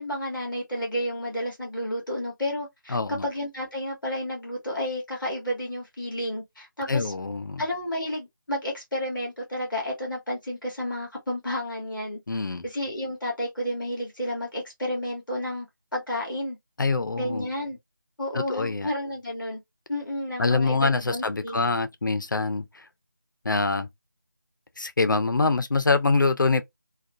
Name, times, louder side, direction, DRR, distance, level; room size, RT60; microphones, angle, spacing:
voice 1, 0.0-7.1 7.6-12.2 12.6-15.7 15.9-16.6 17.2-17.8 18.2-19.6 19.9-21.6, left 1 dB, ahead, 0.7 m, -31 dB
voice 2, 2.9-3.3 6.8-7.6 12.3-12.6 16.8-17.5 18.3-18.9 20.4-22.9 23.4-23.9 24.8-26.6, left 3 dB, 70° left, 0.5 m, -25 dB
2.6 x 2.3 x 2.4 m
figure-of-eight pair, 180°, 11 cm